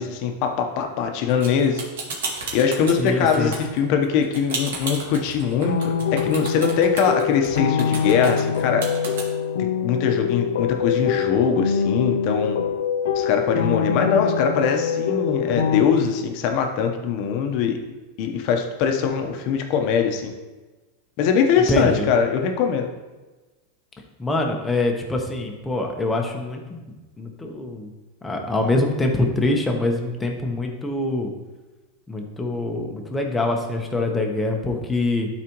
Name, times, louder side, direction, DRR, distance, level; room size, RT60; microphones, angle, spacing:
voice 1, 0.0-1.8 2.5-8.9 9.6-12.6 13.1-17.8 18.2-20.3 21.2-22.9, left 6 dB, 50° left, 5 dB, 0.9 m, -22 dB
sound 1, 1.3-9.2, right 4 dB, 80° right, 1.9 m, -32 dB
voice 2, 3.0-3.5 21.7-22.1 24.2-26.8 27.2-27.9 28.2-31.3 32.1-35.3, left 2 dB, 10° left, 2 dB, 1.0 m, -24 dB
sound 2, 5.7-15.8, left 7 dB, 80° left, 0.4 m, -24 dB
12.5 x 4.2 x 3.0 m, 1.2 s
supercardioid pair, 145°, 0 cm